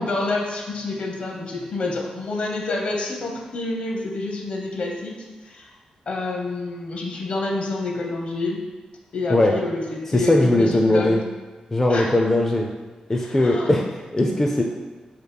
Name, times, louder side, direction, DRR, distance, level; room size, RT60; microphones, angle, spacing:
voice 1, 0.0-5.1 5.4-5.7 6.1-8.6 9.1-11.2 11.9-12.1 13.1-13.7, left 2 dB, 55° left, 0 dB, 0.7 m, -28 dB
voice 2, 10.1-11.2 11.7-12.7 13.1-14.6, left 1 dB, 15° left, 0 dB, 0.3 m, -19 dB
8.0 x 2.9 x 2.2 m, 1.3 s
wide cardioid pair, 155°, 2 cm